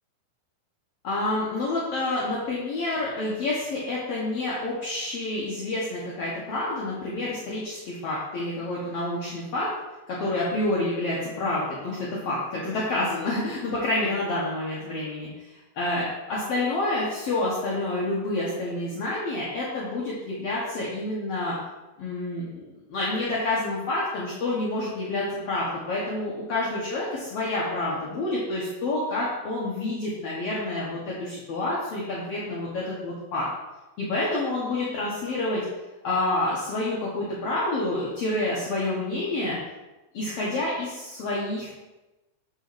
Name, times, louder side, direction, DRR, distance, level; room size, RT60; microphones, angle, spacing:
voice 1, 1.0-9.7 10.1-15.3 15.7-21.5 22.0-33.5 34.0-35.6 36.0-39.6 40.1-41.7, left 2 dB, 60° left, -6 dB, 1.6 m, -28 dB
8.3 x 7.2 x 2.6 m, 1.1 s
omnidirectional pair, 4.2 m